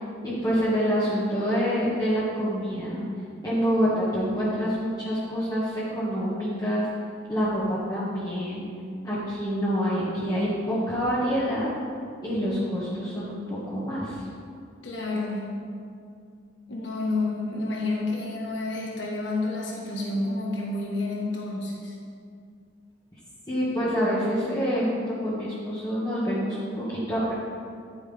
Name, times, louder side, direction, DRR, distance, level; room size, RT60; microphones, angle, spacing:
voice 1, 0.2-3.0 3.4-6.9 7.3-8.7 9.0-11.7 12.2-14.3 23.5-27.3, equal, 20° left, -10 dB, 1.9 m, -26 dB
voice 2, 14.8-15.6 16.7-21.9, left 2 dB, 75° left, -3 dB, 1.6 m, -29 dB
11.0 x 9.5 x 3.6 m, 2.3 s
head